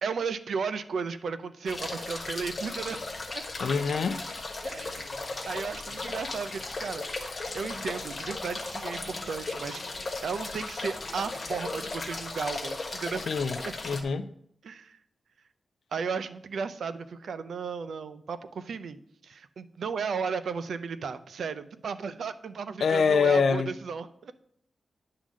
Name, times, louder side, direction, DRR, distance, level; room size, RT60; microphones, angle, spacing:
voice 1, 0.0-3.0 3.3-3.4 4.6-5.0 5.5-7.1 7.5-13.2 13.6-13.7 14.6-15.0 15.9-24.3, right 5 dB, 75° right, 0.5 m, -34 dB
sound 1, 1.7-14.0, left 3 dB, 35° left, 1.2 m, -36 dB
voice 2, 3.6-4.2 13.3-13.6 13.8-14.3 22.8-23.7, left 5 dB, 70° left, 0.4 m, -25 dB
9.9 x 3.8 x 6.1 m
wide cardioid pair, 165°, 0 cm